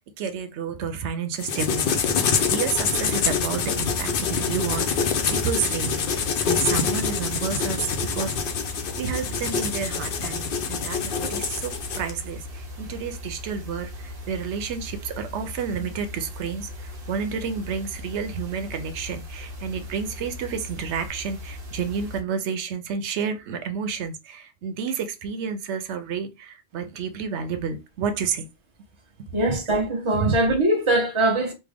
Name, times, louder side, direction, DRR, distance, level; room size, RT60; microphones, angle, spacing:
voice 1, 0.0-8.4 9.0-28.5 29.2-29.6 30.1-30.3, right 6 dB, 90° right, 0.9 m, -30 dB
sound 1, 1.4-12.1, left 6 dB, 60° left, 0.7 m, -26 dB
sound 2, 2.9-22.2, left 1 dB, 60° right, 1.0 m, -38 dB
voice 2, 29.3-31.5, right 1 dB, 30° right, 0.9 m, -22 dB
3.3 x 2.1 x 3.4 m
omnidirectional pair, 1.1 m